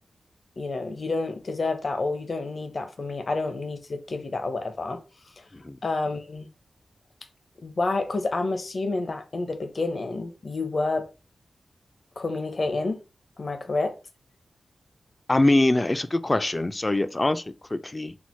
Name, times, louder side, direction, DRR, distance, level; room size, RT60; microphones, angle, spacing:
voice 1, 0.6-5.0 5.4-5.5 5.8-6.5 7.6-11.1 12.2-13.0 13.4-14.0, left 3 dB, 50° left, 0.7 m, -29 dB
voice 2, 15.3-18.1, left 2 dB, 25° left, 0.4 m, -23 dB
4.5 x 2.1 x 4.3 m
wide cardioid pair, 100°, 0 cm